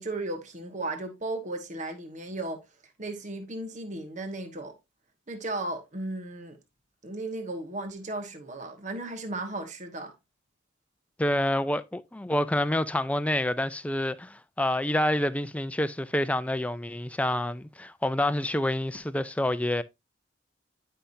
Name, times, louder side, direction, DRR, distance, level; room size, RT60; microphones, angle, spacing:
voice 1, 0.0-2.6 3.0-4.7 5.3-6.6 7.0-10.1, right 2 dB, 40° right, 1.3 m, -35 dB
voice 2, 11.2-19.8, left 1 dB, 5° left, 0.4 m, -28 dB
10.0 x 5.7 x 2.6 m
head